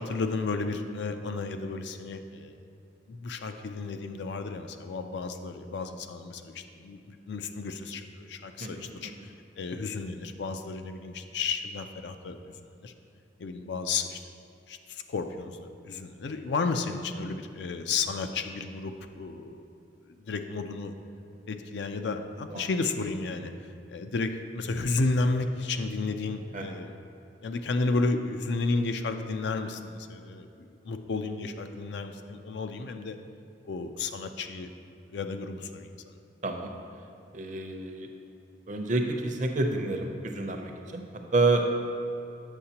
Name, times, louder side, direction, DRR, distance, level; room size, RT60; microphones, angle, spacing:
voice 1, 0.0-2.5 3.1-12.5 12.8-12.9 13.4-14.2 14.7-19.6 20.1-20.9 21.5-23.5 23.9-26.9 27.4-33.2 33.6-34.7 35.1-35.9, left 3 dB, 70° left, 7 dB, 0.4 m, -32 dB
voice 2, 8.6-9.3 22.5-22.7 26.5-26.7 36.4-36.7 37.3-38.1 38.7-41.0 41.3-41.6, right 3 dB, 45° right, 3 dB, 0.6 m, -29 dB
8.0 x 6.4 x 2.9 m, 2.7 s
head